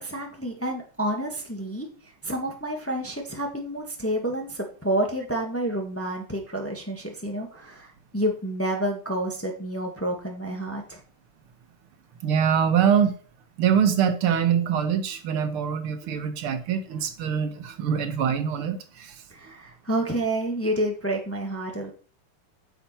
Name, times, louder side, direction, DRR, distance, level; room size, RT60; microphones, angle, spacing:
voice 1, 0.0-1.9 2.2-11.0 19.3-21.9, right 1 dB, 10° left, 1 dB, 1.2 m, -29 dB
voice 2, 12.2-13.2 13.6-19.1, right 8 dB, 80° right, 9 dB, 1.9 m, -24 dB
9.1 x 7.2 x 4.3 m, 0.38 s
omnidirectional pair, 2.4 m